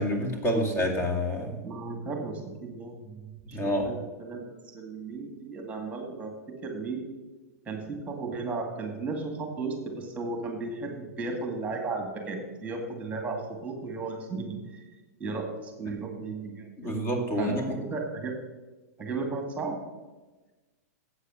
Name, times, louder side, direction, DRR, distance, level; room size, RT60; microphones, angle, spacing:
voice 1, 0.0-1.6 3.5-3.9 16.8-17.6, equal, 30° left, 2 dB, 2.2 m, -28 dB
voice 2, 1.6-7.1 7.7-14.9 15.2-16.9 17.4-18.3 19.0-19.8, right 3 dB, 15° right, 3 dB, 2.1 m, -35 dB
8.2 x 8.1 x 6.4 m, 1.2 s
hypercardioid pair, 120°, 9 cm